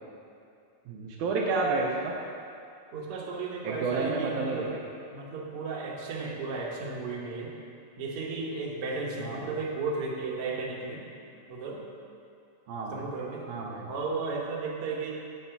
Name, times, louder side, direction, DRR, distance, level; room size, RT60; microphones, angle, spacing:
voice 1, 0.9-2.1 3.6-4.6 9.2-9.5 12.7-13.0 13.5-13.9, right 3 dB, 75° right, -2 dB, 2.0 m, -30 dB
voice 2, 2.9-4.7 5.1-7.5 8.0-11.1 11.5-11.8 12.9-13.4 13.9-15.1, right 4 dB, 60° right, -3 dB, 1.7 m, -34 dB
8.7 x 4.2 x 6.8 m, 2.5 s
omnidirectional pair, 3.6 m